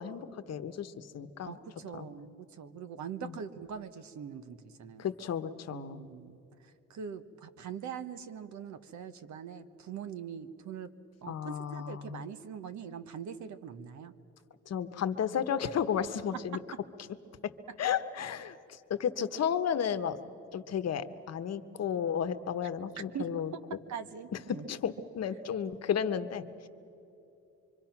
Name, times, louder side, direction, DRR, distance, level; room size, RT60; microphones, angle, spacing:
voice 1, 0.0-1.6 1.9-2.0 3.2-3.4 5.0-6.0 11.3-12.3 14.7-16.6 17.8-20.2 20.5-23.5 24.7-26.7, left 8 dB, 55° left, 10 dB, 1.1 m, -33 dB
voice 2, 1.5-5.1 5.7-10.9 11.2-14.1 23.1-23.4 23.9-24.6, right 7 dB, 70° right, 11 dB, 1.2 m, -42 dB
25.5 x 25.0 x 6.0 m, 2.9 s
cardioid pair, 90°, 30 cm